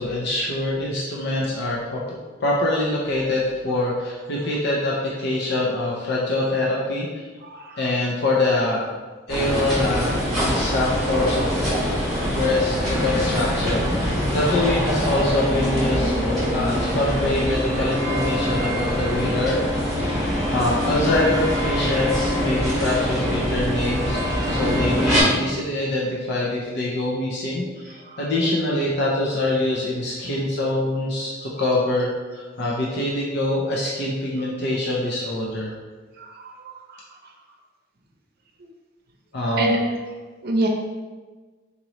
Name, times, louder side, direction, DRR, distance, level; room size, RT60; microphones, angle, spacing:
voice 1, 0.0-7.3 7.8-8.9 9.3-11.5 12.3-20.2 20.5-24.2 24.5-35.7 39.3-39.7, left 2 dB, 60° left, -4 dB, 0.6 m, -24 dB
voice 2, 7.4-7.8 28.1-28.2 36.2-37.0 39.6-39.8 40.4-40.7, right 1 dB, 55° right, 1 dB, 0.6 m, -26 dB
sound 1, 9.3-25.2, equal, ahead, 1.4 m, -24 dB
3.9 x 3.0 x 2.9 m, 1.3 s
head